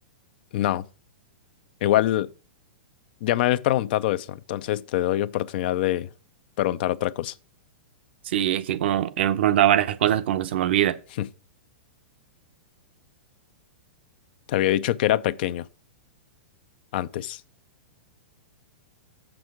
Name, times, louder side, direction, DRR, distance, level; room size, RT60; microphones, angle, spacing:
voice 1, 0.5-0.8 1.8-2.3 3.2-6.1 6.6-7.3 11.2-11.3 14.5-15.7 16.9-17.4, left 13 dB, 55° left, 0.5 m, -24 dB
voice 2, 8.3-11.0, right 11 dB, 65° right, 0.7 m, -22 dB
7.1 x 6.1 x 4.8 m
hypercardioid pair, 130°, 6 cm